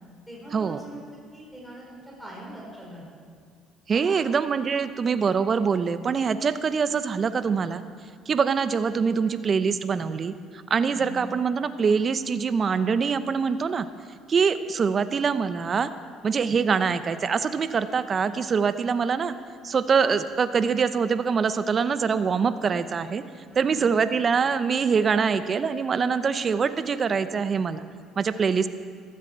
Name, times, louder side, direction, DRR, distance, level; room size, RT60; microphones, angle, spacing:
voice 1, 0.3-1.0 1.3-3.0 3.9-4.3 10.8-11.2 23.5-23.9, right 1 dB, 5° right, -4 dB, 4.4 m, -42 dB
voice 2, 3.9-7.8 8.3-13.9 14.3-15.9 16.2-19.3 19.6-23.2 23.6-27.9 28.2-28.7, right 6 dB, 40° right, 12 dB, 0.7 m, -24 dB
15.5 x 13.0 x 4.5 m, 2.1 s
supercardioid pair, 75°, 0 cm